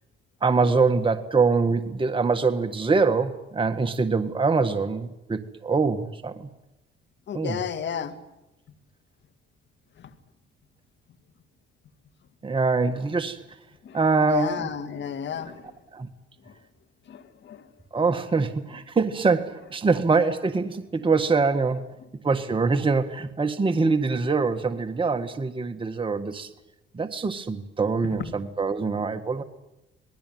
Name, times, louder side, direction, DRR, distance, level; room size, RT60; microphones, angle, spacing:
voice 1, 0.4-6.5 7.3-7.6 12.4-13.4 13.9-14.7 15.5-15.6 15.9-16.1 17.9-21.9 22.2-26.5 26.9-29.4, right 4 dB, 25° right, 7 dB, 1.6 m, -24 dB
voice 2, 7.3-8.1 10.0-10.1 13.8-15.8 16.5-16.6 17.1-17.7, left 8 dB, 65° left, 10 dB, 2.3 m, -33 dB
27.5 x 19.5 x 9.3 m, 0.96 s
cardioid pair, 90°, 20 cm